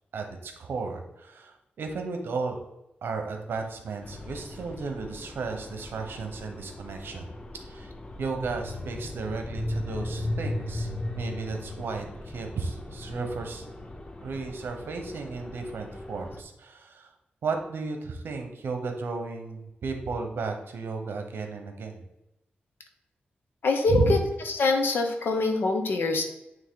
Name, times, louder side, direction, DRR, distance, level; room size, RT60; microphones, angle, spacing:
voice 1, 0.1-2.6 3.0-7.3 7.7-7.9 8.2-13.7 14.2-17.1 17.4-22.0 23.9-24.2, right 4 dB, 80° right, 4 dB, 1.0 m, -34 dB
sound 1, 4.0-16.4, left 1 dB, 25° left, 0.5 m, -37 dB
voice 2, 23.6-24.2 24.6-26.2, left 3 dB, 75° left, 4 dB, 1.0 m, -24 dB
9.0 x 3.2 x 3.7 m, 0.90 s
wide cardioid pair, 150°, 4 cm